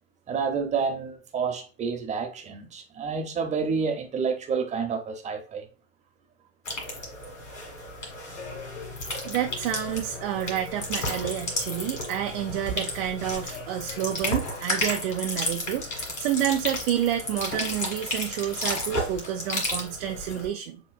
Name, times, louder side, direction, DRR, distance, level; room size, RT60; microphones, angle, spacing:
voice 1, 0.3-5.7, right 5 dB, 20° right, 0.8 m, -29 dB
sound 1, 6.7-20.5, left 1 dB, 90° left, 1.8 m, -33 dB
sound 2, 8.3-14.3, left 5 dB, 70° left, 1.4 m, -43 dB
voice 2, 9.2-20.8, right 11 dB, 50° right, 0.6 m, -29 dB
7.3 x 3.1 x 2.2 m
hypercardioid pair, 100°, 38 cm